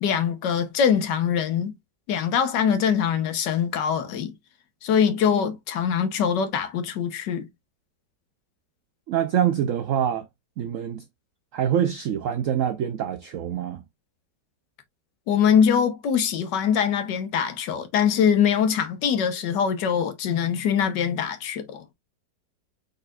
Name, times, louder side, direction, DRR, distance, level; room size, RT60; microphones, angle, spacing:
voice 1, 0.0-1.7 2.1-4.3 4.8-7.5 15.3-21.8, left 7 dB, 75° left, 1.6 m, -23 dB
voice 2, 9.1-10.3 10.6-11.0 11.5-13.8, right 9 dB, 85° right, 0.7 m, -25 dB
4.9 x 4.4 x 2.4 m
omnidirectional pair, 1.9 m